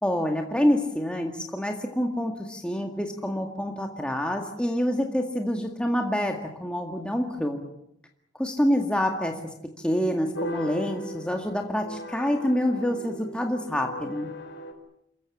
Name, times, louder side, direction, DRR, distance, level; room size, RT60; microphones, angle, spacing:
voice 1, 0.0-7.6 8.4-9.4 9.8-14.3, equal, 5° left, 2 dB, 2.0 m, -27 dB
sound 1, 10.3-14.7, left 1 dB, 65° left, 4.8 m, -38 dB
28.0 x 15.0 x 10.0 m, 0.78 s
head